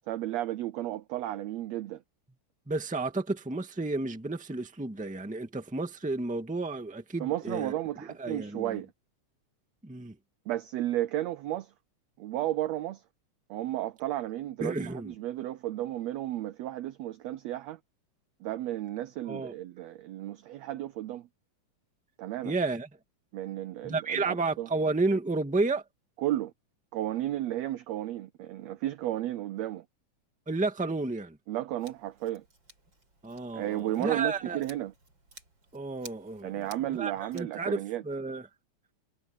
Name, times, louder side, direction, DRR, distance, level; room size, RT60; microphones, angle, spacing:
voice 1, 0.1-2.0 7.2-8.9 10.5-11.7 12.2-13.0 13.5-17.8 18.4-21.3 22.2-22.5 23.3-24.7 26.2-26.5 26.9-29.8 31.5-32.4 33.5-34.9 36.4-38.0, right 14 dB, 85° right, 1.5 m, -33 dB
voice 2, 2.7-7.7 8.2-8.8 9.8-10.2 14.6-15.1 19.2-19.5 22.4-22.9 23.8-25.8 30.5-31.4 33.2-34.6 35.7-38.5, right 3 dB, 5° right, 1.0 m, -32 dB
Scissors, 31.8-37.4, right 3 dB, 35° right, 6.7 m, -55 dB
omnidirectional pair, 3.7 m